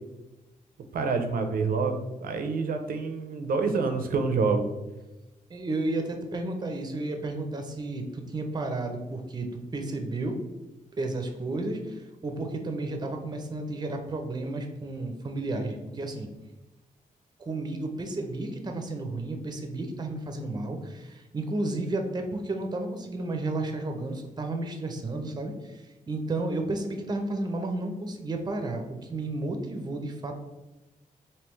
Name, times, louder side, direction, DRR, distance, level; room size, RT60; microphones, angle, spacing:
voice 1, 0.9-4.7, right 4 dB, 90° right, 6 dB, 0.5 m, -27 dB
voice 2, 5.5-10.4 11.0-16.3 17.4-30.3, right 2 dB, 30° right, 4 dB, 0.5 m, -32 dB
3.4 x 2.8 x 3.0 m, 1.1 s
wide cardioid pair, 120°, 14 cm